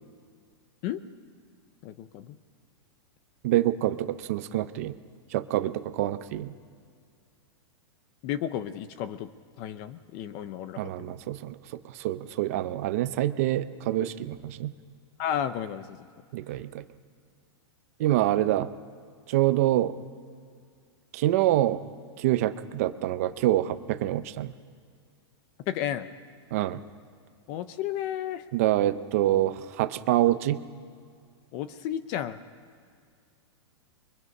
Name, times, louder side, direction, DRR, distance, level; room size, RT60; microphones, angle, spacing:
voice 1, 1.8-2.4 8.2-9.3 9.6-11.2 15.2-16.1 25.7-26.1 27.5-28.5 31.5-32.4, left 10 dB, 20° left, 12 dB, 0.5 m, -33 dB
voice 2, 3.4-4.9 5.3-6.5 10.8-11.6 11.9-14.7 16.3-16.8 18.0-18.7 19.3-19.9 21.1-21.8 22.2-24.5 26.5-26.8 28.5-30.6, right 14 dB, 30° right, 12 dB, 0.6 m, -26 dB
29.0 x 23.0 x 5.4 m, 2.2 s
supercardioid pair, 180°, 15 cm